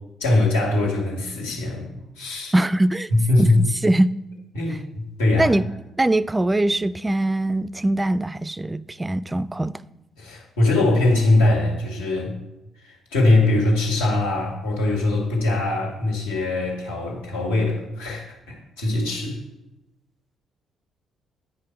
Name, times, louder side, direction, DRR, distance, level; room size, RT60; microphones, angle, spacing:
voice 1, 0.2-2.5 3.1-3.6 4.5-5.6 10.2-12.4 12.8-19.4, left 2 dB, 80° left, 1.9 m, -22 dB
voice 2, 2.5-3.1 3.4-4.1 5.4-5.6 6.0-9.7, right 1 dB, 20° right, 0.3 m, -22 dB
9.7 x 5.1 x 4.5 m
hypercardioid pair, 45°, 0 cm